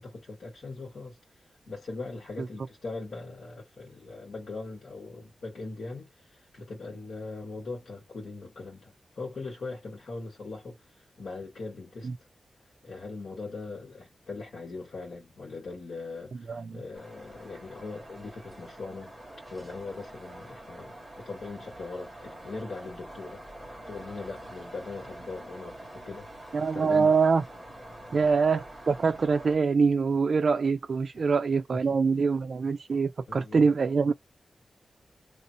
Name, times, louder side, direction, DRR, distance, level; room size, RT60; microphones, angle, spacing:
voice 1, 0.0-12.1 12.8-19.2 19.5-23.4 23.9-26.3 26.7-27.1 28.1-28.3 31.2-31.3 31.7-31.8 33.3-33.7, left 3 dB, 70° left, 1.9 m, -40 dB
voice 2, 16.5-16.8 26.5-27.4 28.1-34.1, right 5 dB, 55° right, 0.4 m, -24 dB
sound 1, 16.9-29.6, right 1 dB, ahead, 1.4 m, -46 dB
3.1 x 2.7 x 3.0 m
wide cardioid pair, 145°, 0 cm